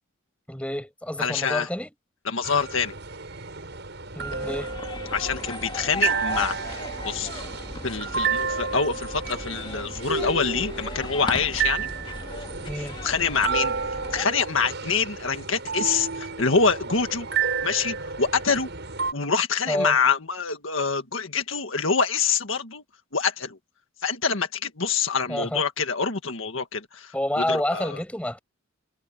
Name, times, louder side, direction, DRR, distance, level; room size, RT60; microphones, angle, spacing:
voice 1, 0.5-1.9 4.1-4.7 12.7-13.0 19.7-20.0 25.3-25.6 27.1-28.4, left 1 dB, 5° left, 7.9 m, -28 dB
voice 2, 1.2-1.7 2.3-2.9 5.1-6.8 7.1-7.4 7.8-11.9 12.8-17.3 17.6-18.7 19.1-22.8 23.1-23.6 24.0-28.0, left 5 dB, 70° left, 1.8 m, -26 dB
sound 1, 2.4-19.1, right 6 dB, 55° right, 6.7 m, -31 dB
sound 2, 4.2-14.2, left 2 dB, 25° left, 2.0 m, -37 dB
head